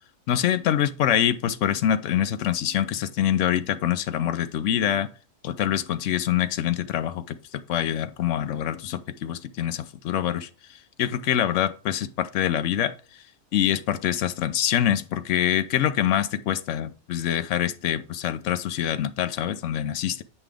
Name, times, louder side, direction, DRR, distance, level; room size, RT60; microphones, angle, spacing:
voice 1, 0.3-5.1 5.4-10.5 11.0-12.9 13.5-20.2, left 10 dB, 70° left, 0.9 m, -25 dB
8.1 x 5.6 x 3.4 m
omnidirectional pair, 1.4 m